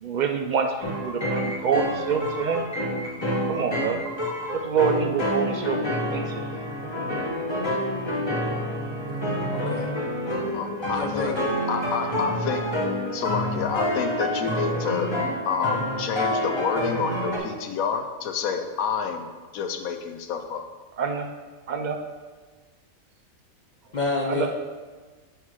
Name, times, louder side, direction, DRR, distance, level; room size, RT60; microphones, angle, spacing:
voice 1, 0.0-2.6 3.5-4.0 4.6-6.5 21.0-21.3 21.7-22.0 24.3-24.5, right 6 dB, 70° right, 5 dB, 0.4 m, -26 dB
sound 1, 0.8-17.4, equal, 20° left, 1.2 m, -28 dB
voice 2, 9.5-9.9 10.9-11.4 23.9-24.5, left 3 dB, 45° left, 0 dB, 0.6 m, -28 dB
voice 3, 10.5-11.4 11.7-12.6 13.1-15.1 15.4-19.3 19.5-20.7, left 6 dB, 90° left, 6 dB, 1.1 m, -28 dB
5.6 x 4.5 x 6.4 m, 1.4 s
omnidirectional pair, 1.4 m